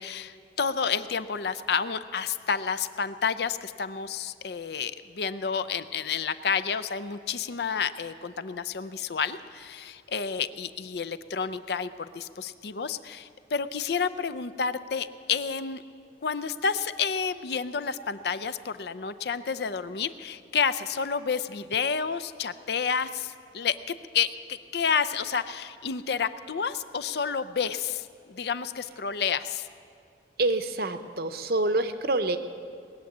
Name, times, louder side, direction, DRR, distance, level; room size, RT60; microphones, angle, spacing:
voice 1, 0.0-15.8 16.2-29.7, left 6 dB, 60° left, 13 dB, 0.5 m, -30 dB
voice 2, 30.4-32.4, right 2 dB, 55° right, 10 dB, 0.8 m, -26 dB
20.0 x 7.3 x 9.4 m, 2.4 s
head